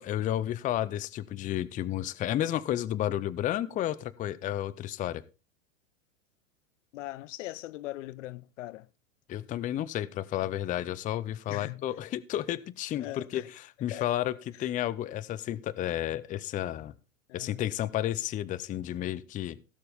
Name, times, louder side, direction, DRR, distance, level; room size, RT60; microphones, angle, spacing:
voice 1, 0.1-5.2 9.3-16.9 17.3-19.6, left 12 dB, 20° left, 0.5 m, -32 dB
voice 2, 6.9-8.9 11.5-11.9 13.0-13.5 13.9-14.1 14.6-14.7 17.3-17.6, left 16 dB, 65° left, 0.6 m, -40 dB
17.0 x 6.8 x 3.5 m
hypercardioid pair, 105°, 40 cm